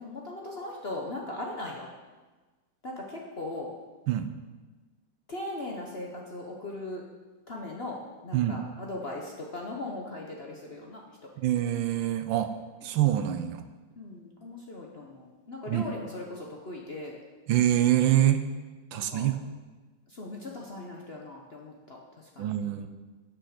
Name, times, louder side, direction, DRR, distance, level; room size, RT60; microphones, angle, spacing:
voice 1, 0.0-1.9 2.8-3.7 5.3-7.0 7.5-11.0 14.0-17.2 18.9-19.3 20.1-22.5, left 2 dB, 45° left, -1 dB, 0.8 m, -39 dB
voice 2, 11.4-12.5 12.8-13.6 15.7-15.8 17.5-18.4 18.9-19.4 22.4-22.9, right 12 dB, 80° right, 9 dB, 1.4 m, -25 dB
8.3 x 6.1 x 6.5 m, 1.3 s
omnidirectional pair, 2.2 m